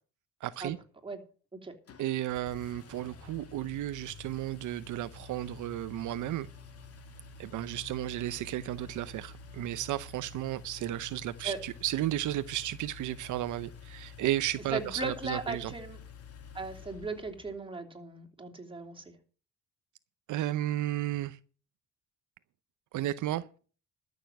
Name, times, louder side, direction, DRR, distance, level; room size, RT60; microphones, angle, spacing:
voice 1, 0.4-0.8 2.0-6.5 7.4-15.7 20.3-21.4 22.9-23.4, right 14 dB, 80° right, 0.7 m, -33 dB
Engine, 1.9-17.6, left 5 dB, 50° left, 2.2 m, -49 dB
voice 2, 14.7-16.0 16.5-19.0, right 3 dB, 15° right, 3.2 m, -37 dB
13.0 x 6.8 x 7.7 m
cardioid pair, 90°, 30 cm